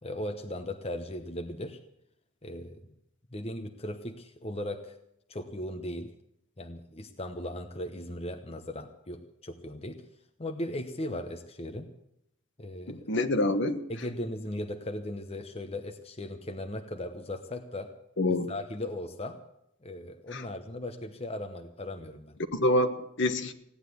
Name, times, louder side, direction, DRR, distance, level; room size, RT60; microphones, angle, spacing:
voice 1, 0.0-1.8 2.4-2.8 3.3-5.0 5.3-6.1 6.6-10.0 10.4-11.9 12.6-13.0 13.9-17.9 18.5-19.4 19.8-22.4, left 1 dB, 25° left, 5 dB, 1.0 m, -37 dB
voice 2, 12.9-13.8 18.2-18.5 20.3-20.4 22.5-23.5, left 1 dB, 55° left, 9 dB, 1.3 m, -26 dB
16.5 x 10.0 x 8.3 m, 0.78 s
head